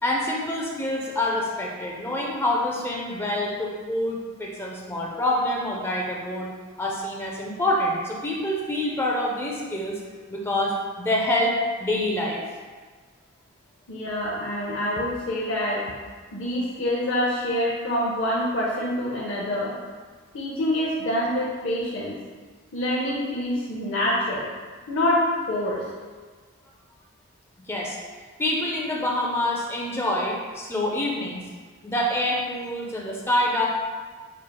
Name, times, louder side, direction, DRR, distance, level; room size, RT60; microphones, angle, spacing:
voice 1, 0.0-6.5 6.8-10.0 10.3-12.4 27.7-28.0 28.4-31.4 31.8-33.7, left 1 dB, 10° left, -3 dB, 0.5 m, -26 dB
voice 2, 13.9-15.8 16.3-19.7 20.3-22.1 22.7-24.5 24.9-25.2 25.5-25.8, left 1 dB, 65° left, -6 dB, 0.6 m, -26 dB
4.3 x 3.2 x 2.2 m, 1.5 s
head